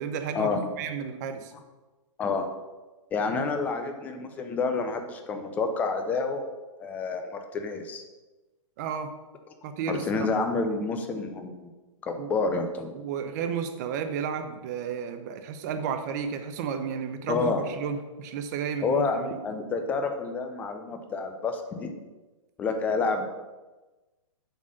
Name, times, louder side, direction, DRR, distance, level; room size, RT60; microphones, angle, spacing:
voice 1, 0.0-1.5 8.8-9.1 9.6-10.3 12.2-12.3 12.9-19.4, right 7 dB, 30° right, 8 dB, 0.7 m, -32 dB
voice 2, 3.1-6.4 6.8-8.0 9.9-11.7 12.0-12.9 17.3-17.6 18.8-19.2 19.4-21.9 22.6-23.3, left 4 dB, 10° left, 5 dB, 0.4 m, -28 dB
7.3 x 4.2 x 6.3 m, 1.2 s
hypercardioid pair, 165°, 17 cm